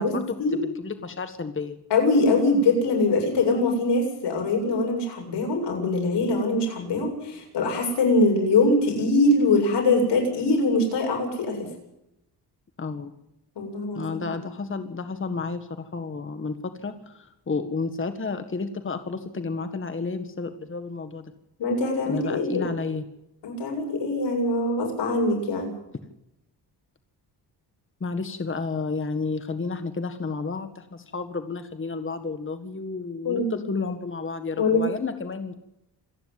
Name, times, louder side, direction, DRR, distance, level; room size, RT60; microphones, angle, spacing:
voice 1, 0.0-1.8 12.8-13.1 14.0-21.3 22.1-23.0 28.0-35.5, left 4 dB, 30° left, 9 dB, 1.7 m, -31 dB
voice 2, 1.9-11.7 13.6-14.4 21.6-22.7 23.4-25.7 33.2-33.6 34.6-34.9, left 2 dB, 80° left, 2 dB, 7.8 m, -23 dB
27.5 x 10.5 x 9.4 m, 0.84 s
cardioid pair, 100°, 41 cm